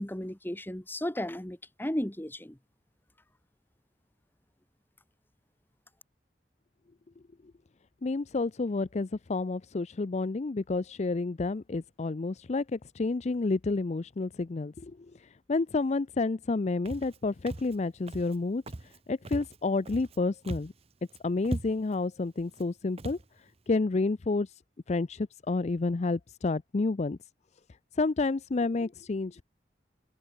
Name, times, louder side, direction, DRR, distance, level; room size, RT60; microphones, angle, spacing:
voice 1, 0.0-2.6, left 1 dB, 10° left, 1.4 m, -34 dB
voice 2, 8.0-20.7 21.2-23.2 23.7-24.5 24.9-27.2 28.0-29.4, left 3 dB, 40° left, 0.5 m, -30 dB
Walk footsteps, 16.9-17.2 17.5-17.8 18.1-18.4 18.7-19.0 19.3-20.2 20.4-20.8 21.1-21.2 21.4-22.0 22.5-22.7 23.0-23.2, right 1 dB, 35° right, 0.8 m, -39 dB
head